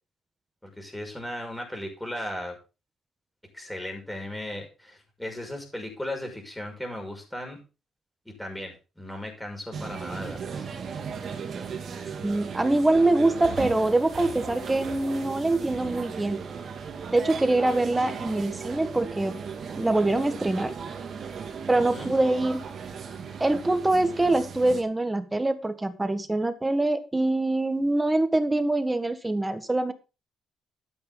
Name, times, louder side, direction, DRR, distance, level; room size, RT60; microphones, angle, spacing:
voice 1, 0.6-2.6 3.5-7.6 8.3-10.6 21.7-22.1, left 1 dB, 5° left, 2 dB, 5.9 m, -36 dB
sound 1, 9.7-24.8, right 6 dB, 55° right, 2.4 m, -36 dB
voice 2, 12.2-16.4 17.1-19.3 19.7-20.7 21.7-22.6 23.4-29.9, right 2 dB, 15° right, 11 dB, 1.6 m, -24 dB
12.5 x 9.0 x 3.9 m, 0.31 s
cardioid pair, 90°, 0 cm